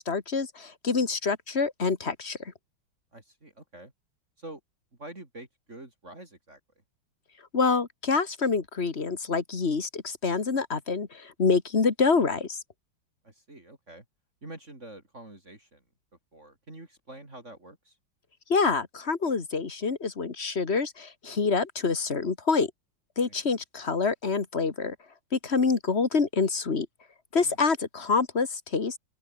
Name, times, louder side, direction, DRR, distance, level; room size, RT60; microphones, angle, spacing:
voice 1, 0.0-2.4 7.5-12.6 18.5-22.7 23.2-25.0 25.3-26.9 27.3-29.0, left 4 dB, 30° left, 1.9 m, -26 dB
voice 2, 3.1-3.9 4.4-4.6 5.0-6.6 13.2-14.0 14.4-15.8 16.3-18.0 23.3-23.6 27.4-27.6, right 2 dB, 35° right, 4.6 m, -46 dB
open air
omnidirectional pair, 2.3 m